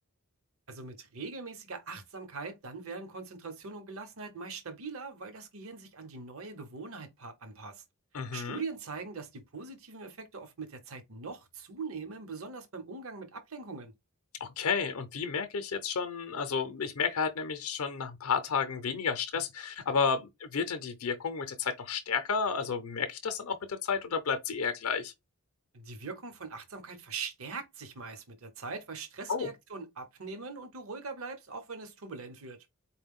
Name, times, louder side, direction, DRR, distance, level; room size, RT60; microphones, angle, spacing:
voice 1, 0.7-7.8 8.3-13.9 25.7-32.6, right 4 dB, 65° right, 0.9 m, -42 dB
voice 2, 8.1-8.6 14.4-25.1 29.3-29.5, left 5 dB, 65° left, 0.5 m, -32 dB
4.3 x 2.2 x 3.6 m
head